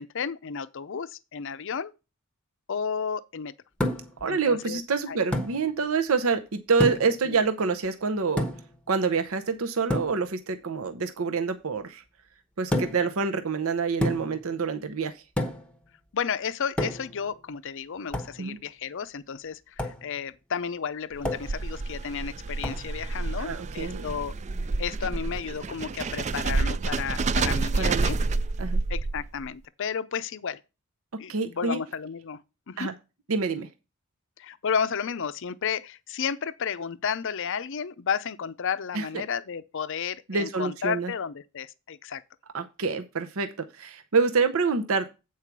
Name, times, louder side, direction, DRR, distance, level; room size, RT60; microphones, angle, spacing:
voice 1, 0.0-1.9 2.7-3.5 4.3-4.8 5.1-5.2 7.2-7.4 16.1-24.3 24.8-28.2 28.9-30.6 31.2-32.9 34.4-42.2, left 6 dB, 60° left, 0.5 m, -32 dB
sound 1, 3.8-4.2 5.3-5.6 6.8-7.2 8.4-8.7 9.9-10.2 12.7-13.1 14.0-14.4 15.4-15.7 16.8-17.2 18.1-18.4 19.8-20.0 21.2-21.6 22.6-22.9, left 1 dB, 5° left, 0.9 m, -29 dB
voice 2, 4.2-8.5 8.9-12.0 12.6-15.2 18.4-18.6 23.4-24.0 27.8-28.1 28.6-28.8 31.1-31.8 32.8-32.9 33.3-33.7 38.9-39.1 40.3-41.1 42.5-45.1, right 4 dB, 65° right, 0.7 m, -27 dB
sound 2, 21.1-29.5, right 3 dB, 30° right, 0.3 m, -29 dB
8.3 x 4.7 x 6.0 m
head